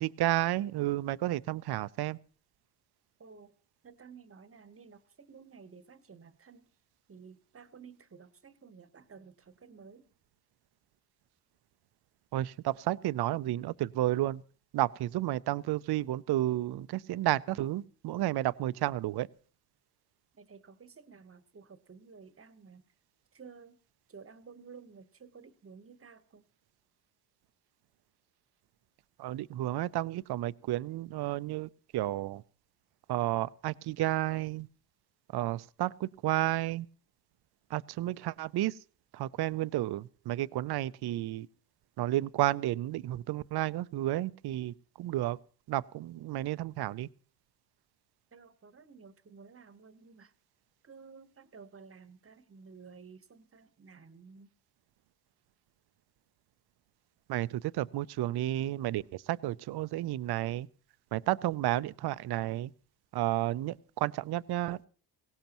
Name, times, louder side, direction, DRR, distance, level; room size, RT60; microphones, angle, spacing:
voice 1, 0.0-2.2 12.3-14.4 14.7-19.3 29.2-32.4 33.1-34.7 35.3-36.9 37.7-38.8 39.1-41.5 42.0-45.4 45.7-47.1 57.3-60.7 61.1-62.7 63.1-64.9, right 15 dB, 60° right, 0.6 m, -32 dB
voice 2, 3.2-3.5 3.8-6.7 7.1-10.1 20.3-22.9 23.3-23.8 24.1-26.4 48.3-50.3 50.8-54.5, right 5 dB, 30° right, 1.1 m, -53 dB
18.5 x 16.5 x 3.0 m
supercardioid pair, 70°, 44 cm